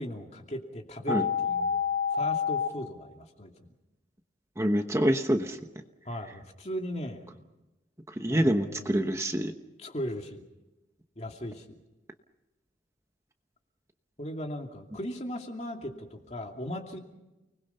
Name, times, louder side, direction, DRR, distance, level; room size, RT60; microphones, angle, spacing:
voice 1, 0.0-1.8 2.1-3.5 6.1-7.3 8.3-9.2 9.8-10.5 11.2-11.8 14.2-17.0, equal, 35° left, 3 dB, 2.6 m, -38 dB
sound 1, 1.1-2.7, left 7 dB, 60° left, 2.8 m, -28 dB
voice 2, 4.6-5.6 8.2-9.5, equal, 15° right, 5 dB, 1.0 m, -26 dB
30.0 x 20.5 x 5.6 m, 1.0 s
head